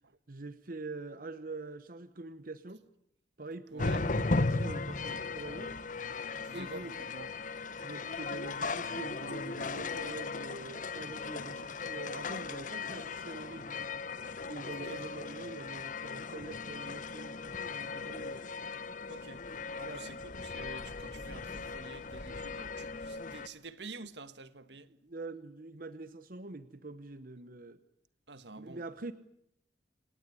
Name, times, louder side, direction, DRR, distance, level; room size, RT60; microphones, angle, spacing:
voice 1, 0.3-2.8 3.4-5.7 6.5-6.9 7.8-13.7 14.5-18.5 19.8-20.1 25.0-27.8 28.5-29.1, right 3 dB, 55° right, 1.0 m, -45 dB
voice 2, 3.7-4.0 6.4-7.3 14.7-15.1 19.1-24.9 28.3-28.8, right 3 dB, 75° right, 1.5 m, -48 dB
sound 1, 3.8-23.5, left 3 dB, 50° left, 1.2 m, -37 dB
28.5 x 18.0 x 9.8 m
head